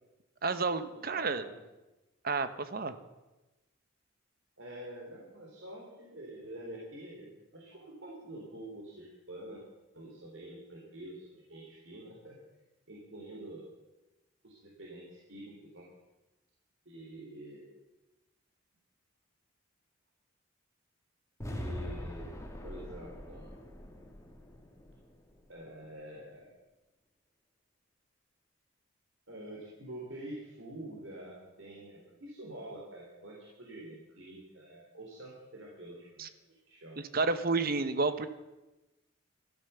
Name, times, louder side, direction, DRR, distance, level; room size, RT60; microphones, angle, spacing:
voice 1, 0.4-1.4 2.2-2.9 36.2-36.3 37.0-38.3, right 3 dB, 50° right, 11 dB, 1.0 m, -30 dB
voice 2, 1.0-1.6 2.9-3.0 4.6-9.6 9.9-12.4 12.9-13.7 14.4-15.9 16.9-17.7 21.4-22.3 22.6-23.6 25.5-26.5 29.3-37.0, right 1 dB, 70° right, -3 dB, 3.6 m, -47 dB
sound 1, 21.4-25.6, equal, 15° left, 2.2 m, -43 dB
14.0 x 12.5 x 6.9 m, 1.0 s
head